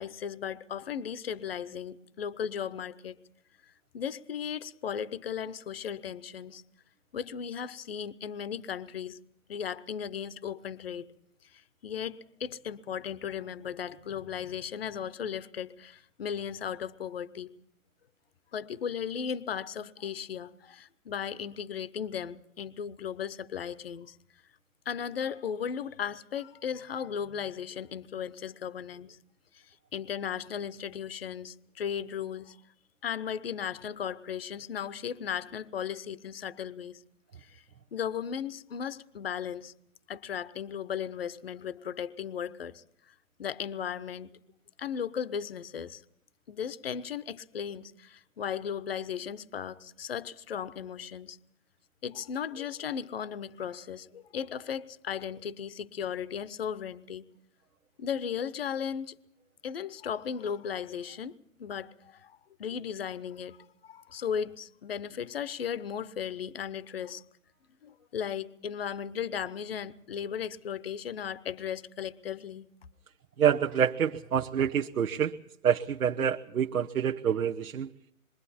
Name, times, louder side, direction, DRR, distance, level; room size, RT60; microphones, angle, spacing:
voice 1, 0.0-3.2 3.9-6.6 7.1-9.2 9.5-11.1 11.8-17.5 18.5-24.2 24.9-29.2 29.9-32.6 33.0-37.0 37.5-37.6 37.9-39.7 40.1-42.8 43.4-44.3 44.8-46.0 46.5-51.4 52.0-57.2 58.0-59.1 59.6-62.3 62.6-63.6 63.8-67.2 67.8-72.7, left 8 dB, 40° left, 0.9 m, -36 dB
voice 2, 73.4-75.3 75.6-77.9, right 8 dB, 80° right, 1.2 m, -27 dB
27.0 x 22.5 x 4.2 m
hypercardioid pair, 170°, 43 cm